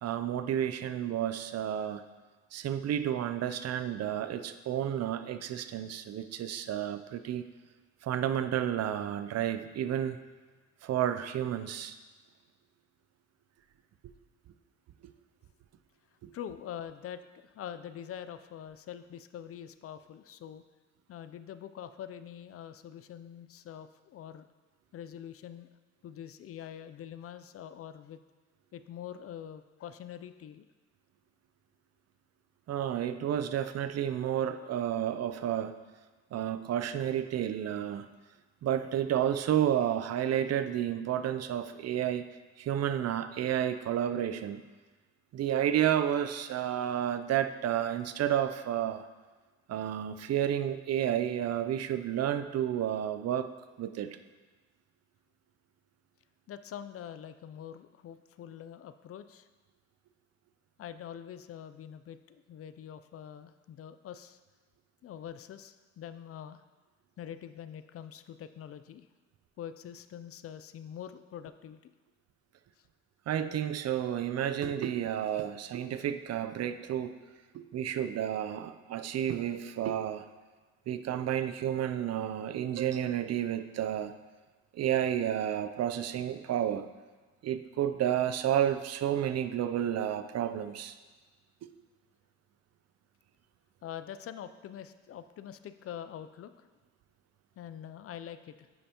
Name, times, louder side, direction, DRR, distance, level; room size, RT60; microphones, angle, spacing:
voice 1, 0.0-2.0 2.5-7.5 8.0-10.2 10.8-12.0 16.2-16.3 32.7-35.7 36.3-38.1 38.6-42.3 42.6-44.6 45.3-49.1 49.7-53.5 53.8-54.2 73.3-77.1 77.5-80.2 80.9-84.1 84.7-86.9 87.4-90.9, right 10 dB, 55° right, 10 dB, 0.5 m, -31 dB
voice 2, 16.3-20.6 21.1-24.5 24.9-25.7 26.0-28.2 28.7-30.7 56.5-59.5 60.8-64.4 65.0-66.6 67.2-69.1 69.6-71.9 72.8-72.9 93.8-96.7 97.6-98.7, left 9 dB, 50° left, 12 dB, 0.4 m, -44 dB
9.5 x 5.5 x 2.9 m, 1.3 s
cardioid pair, 90°, 30 cm